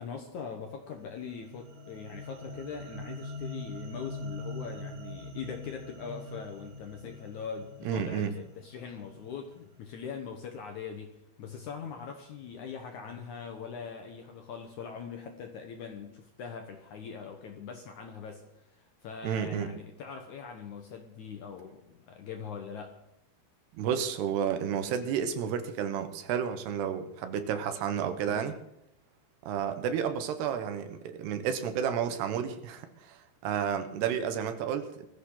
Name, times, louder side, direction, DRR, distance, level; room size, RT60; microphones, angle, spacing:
voice 1, 0.0-23.0 28.2-28.5, left 6 dB, 65° left, 4 dB, 2.0 m, -42 dB
sound 1, 1.1-9.5, left 1 dB, 55° right, 3.2 m, -43 dB
voice 2, 7.8-8.3 19.2-19.7 23.7-28.5 29.5-35.1, right 8 dB, 80° right, 9 dB, 3.3 m, -31 dB
20.5 x 15.0 x 3.9 m, 0.83 s
omnidirectional pair, 4.8 m